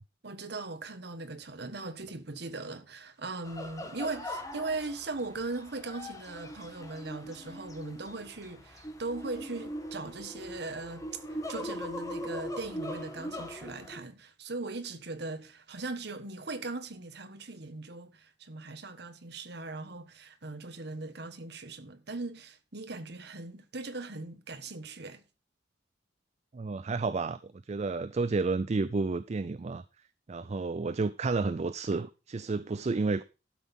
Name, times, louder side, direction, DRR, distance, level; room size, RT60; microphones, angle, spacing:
voice 1, 0.2-11.0 11.5-25.2, right 3 dB, 65° right, 1.4 m, -39 dB
sound 1, 3.4-14.0, equal, 20° left, 1.8 m, -41 dB
voice 2, 26.5-29.8 30.3-33.2, right 3 dB, 35° right, 0.4 m, -31 dB
12.0 x 6.0 x 5.3 m
head